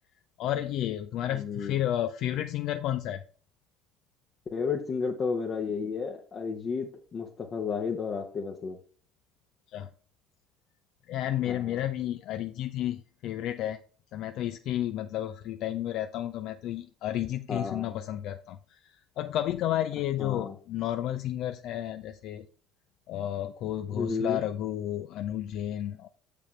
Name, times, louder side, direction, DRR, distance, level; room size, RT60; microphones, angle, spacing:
voice 1, 0.4-3.2 9.7-9.9 11.1-13.8 14.1-18.8 19.2-22.5 23.1-26.1, left 12 dB, 50° left, 10 dB, 0.4 m, -32 dB
voice 2, 1.3-1.8 4.5-8.8 11.4-11.8 17.5-18.0 20.2-20.5 23.9-24.4, left 5 dB, 35° left, 1 dB, 0.9 m, -32 dB
7.1 x 5.2 x 4.4 m, 0.43 s
figure-of-eight pair, 55°, 0 cm